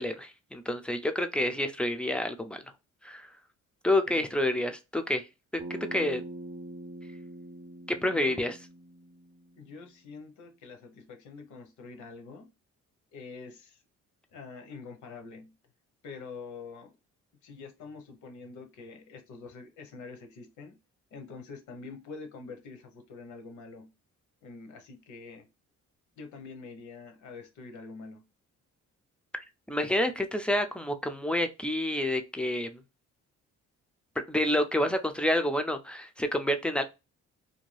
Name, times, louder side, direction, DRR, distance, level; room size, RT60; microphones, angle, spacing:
voice 1, 0.0-2.6 3.0-3.3 3.8-5.2 5.5-5.6 5.9-6.2 7.9-8.6 29.7-32.8 34.3-36.8, left 1 dB, 5° left, 0.3 m, -28 dB
Bass guitar, 5.6-9.9, right 1 dB, 30° right, 0.6 m, -44 dB
voice 2, 8.1-8.5 9.6-12.5 13.1-13.8 14.3-15.5 16.0-17.0 17.4-20.8 21.1-23.9 24.4-25.5 26.2-28.2, left 4 dB, 75° left, 0.8 m, -45 dB
2.6 x 2.2 x 3.1 m
cardioid pair, 90°, 30 cm